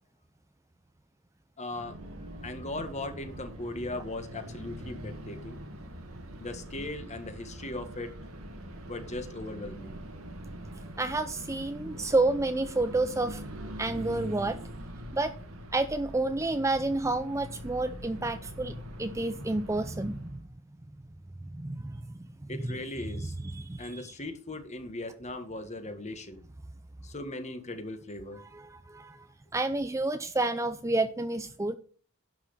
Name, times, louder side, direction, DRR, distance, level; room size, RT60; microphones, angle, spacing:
voice 1, 1.6-2.0 2.4-5.6 6.4-8.1 8.9-9.9 22.5-23.3 23.8-26.4 27.0-28.4, left 2 dB, 35° left, 1.7 m, -38 dB
sound 1, 1.7-20.4, right 1 dB, 80° right, 2.0 m, -43 dB
voice 2, 11.0-13.4 13.8-14.6 15.1-15.3 15.7-20.4 21.4-22.2 22.6-22.8 23.2-24.1 28.5-31.8, right 2 dB, 15° right, 0.5 m, -30 dB
11.5 x 6.0 x 6.7 m
head